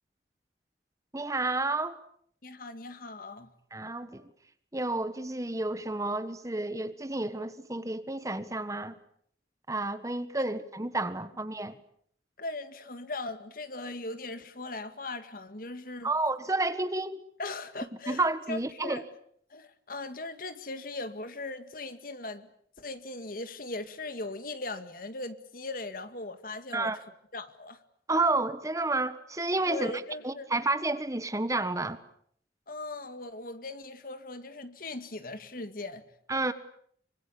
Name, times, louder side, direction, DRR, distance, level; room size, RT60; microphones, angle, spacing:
voice 1, 1.1-2.0 3.7-4.3 4.7-9.0 9.7-11.8 16.0-17.2 18.1-19.0 26.7-27.0 28.1-29.9 30.2-32.0 36.3-36.5, right 2 dB, 20° right, 1.3 m, -30 dB
voice 2, 2.4-3.5 12.4-16.1 17.4-18.2 18.5-19.0 19.5-22.5 22.8-26.9 27.3-27.8 29.7-30.5 32.7-36.0, left 2 dB, 50° left, 2.0 m, -39 dB
25.0 x 25.0 x 8.6 m
head